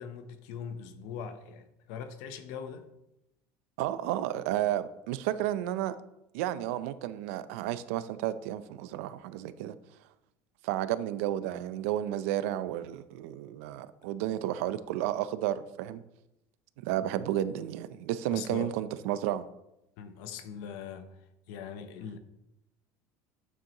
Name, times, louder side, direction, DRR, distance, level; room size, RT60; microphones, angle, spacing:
voice 1, 0.0-2.9 18.3-18.8 20.0-21.2 21.5-22.2, left 7 dB, 65° left, 0.8 m, -41 dB
voice 2, 3.8-6.0 6.3-9.8 10.6-16.0 16.8-19.4, right 12 dB, 85° right, 0.5 m, -32 dB
9.1 x 7.2 x 2.9 m
cardioid pair, 180°, 7 cm